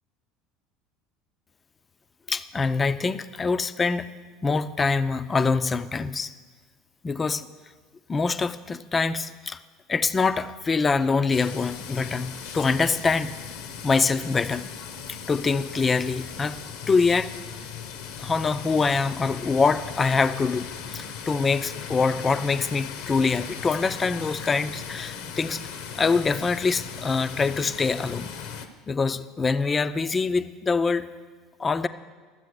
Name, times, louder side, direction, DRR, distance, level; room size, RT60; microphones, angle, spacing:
voice 1, 2.3-4.0 4.4-6.3 7.0-7.5 8.1-9.6 9.9-13.3 13.8-14.7 15.1-16.6 16.9-17.3 18.2-25.6 25.9-28.3 28.9-31.1 31.6-31.9, left 4 dB, 25° left, 13 dB, 0.5 m, -24 dB
sound 1, 11.3-28.7, left 7 dB, 65° left, 0.8 m, -38 dB
12.5 x 7.6 x 6.5 m, 1.5 s
figure-of-eight pair, 70°, 0 cm